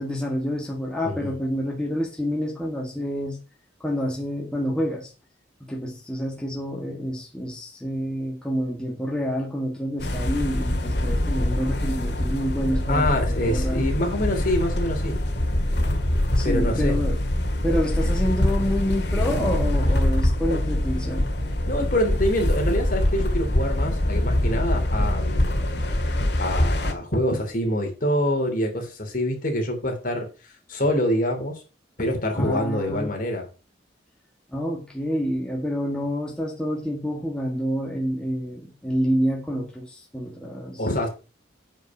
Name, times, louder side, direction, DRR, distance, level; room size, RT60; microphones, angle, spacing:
voice 1, 0.0-3.4 3.8-5.1 5.6-13.1 13.5-13.9 16.3-21.3 32.3-33.1 34.5-40.8, equal, 5° left, -1 dB, 1.8 m, -28 dB
sound 1, 10.0-26.9, left 1 dB, 65° left, 2.0 m, -24 dB
voice 2, 12.9-15.2 16.4-17.0 21.7-25.7 26.4-30.3 30.7-31.6 32.0-33.4 40.8-41.1, left 1 dB, 50° left, 3 dB, 3.0 m, -25 dB
9.1 x 5.5 x 5.9 m, 0.33 s
head